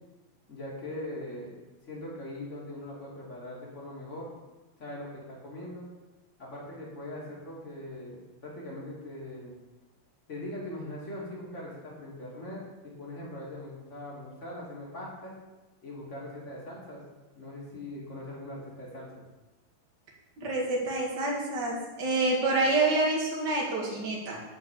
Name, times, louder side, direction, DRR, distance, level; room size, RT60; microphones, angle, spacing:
voice 1, 0.5-1.6 1.8-4.3 4.8-5.9 6.4-9.5 10.3-15.3 15.8-17.0 17.3-19.2, left 1 dB, 25° left, -5 dB, 2.3 m, -41 dB
voice 2, 20.4-24.4, right 2 dB, 40° right, -2 dB, 1.9 m, -27 dB
10.5 x 4.7 x 7.3 m, 1.1 s
omnidirectional pair, 4.2 m